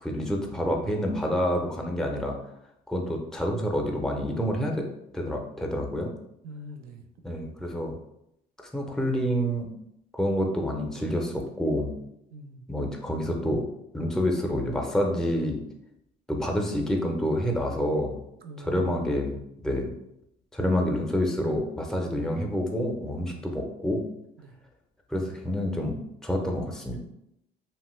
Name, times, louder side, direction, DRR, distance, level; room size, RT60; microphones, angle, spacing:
voice 1, 0.0-2.4 2.9-4.8 5.1-6.1 7.2-7.9 8.7-9.7 10.1-11.9 12.7-13.6 13.9-15.6 16.3-18.2 18.6-19.4 19.6-19.9 20.5-24.0 25.1-26.0 26.2-27.0, equal, 5° left, 1 dB, 0.5 m, -28 dB
voice 2, 6.4-7.0 12.3-12.6 18.4-19.1 23.3-23.4 24.4-24.5, equal, 65° right, 6 dB, 0.5 m, -43 dB
2.9 x 2.1 x 3.1 m, 0.79 s
cardioid pair, 110°, 17 cm